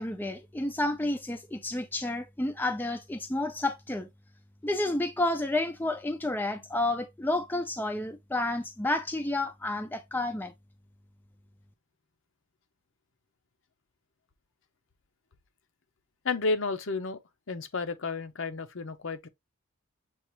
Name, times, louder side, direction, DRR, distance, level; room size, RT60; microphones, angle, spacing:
voice 1, 0.0-4.1 4.6-10.5, left 2 dB, 10° left, 0.4 m, -30 dB
voice 2, 16.2-17.2 17.5-19.3, left 3 dB, 60° left, 0.7 m, -31 dB
7.1 x 2.5 x 3.0 m
head